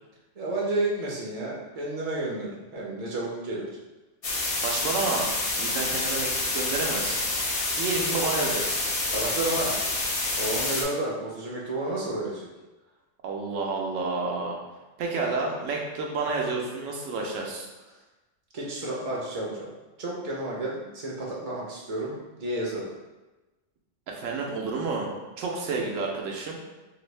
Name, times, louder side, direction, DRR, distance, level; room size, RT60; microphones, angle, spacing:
voice 1, 0.4-3.7 9.1-9.7 10.4-12.5 18.5-19.7 20.0-22.9, right 2 dB, 50° right, -4 dB, 0.5 m, -31 dB
sound 1, 4.2-10.8, left 2 dB, 50° left, 0.4 m, -28 dB
voice 2, 4.6-5.3 5.6-7.2 7.8-8.8 13.2-14.6 15.0-17.7 24.2-25.1 25.4-26.6, right 3 dB, 90° right, 0 dB, 1.0 m, -30 dB
2.9 x 2.6 x 3.1 m, 1.1 s
omnidirectional pair, 1.3 m